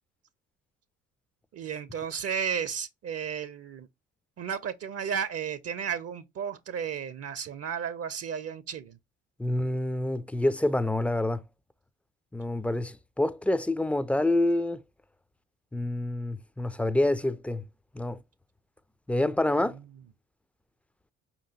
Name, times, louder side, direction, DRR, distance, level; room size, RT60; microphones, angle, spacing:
voice 1, 1.5-3.9 4.4-9.0, right 7 dB, 45° right, 0.6 m, -33 dB
voice 2, 9.4-11.4 12.3-14.8 15.7-17.6 17.9-18.2 19.1-19.8, left 1 dB, 5° left, 0.4 m, -27 dB
4.9 x 2.9 x 2.7 m
hypercardioid pair, 50°, 35 cm